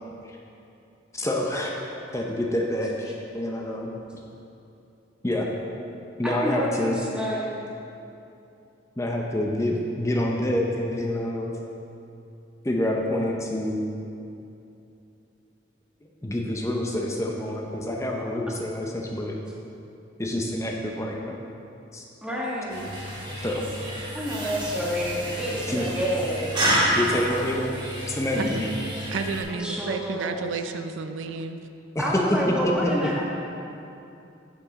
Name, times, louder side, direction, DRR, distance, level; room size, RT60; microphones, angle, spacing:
voice 1, 1.1-1.7 2.1-3.9 5.2-5.5 6.2-7.0 9.0-11.5 12.6-13.9 16.2-19.4 20.2-21.4 21.9-22.0 23.4-23.6 25.5-25.9 26.9-27.8 28.1-28.7 31.9-32.0 32.8-32.9, left 1 dB, 15° left, 0 dB, 0.6 m, -27 dB
voice 2, 6.2-7.6 22.2-22.9 24.1-26.6 29.5-30.5 32.0-33.2, equal, 5° right, -5 dB, 1.4 m, -29 dB
sound 1, 22.7-29.4, equal, 25° right, 1.6 m, -29 dB
voice 3, 29.1-31.6, right 5 dB, 85° right, 8 dB, 0.4 m, -31 dB
8.9 x 7.1 x 4.0 m, 2.7 s
head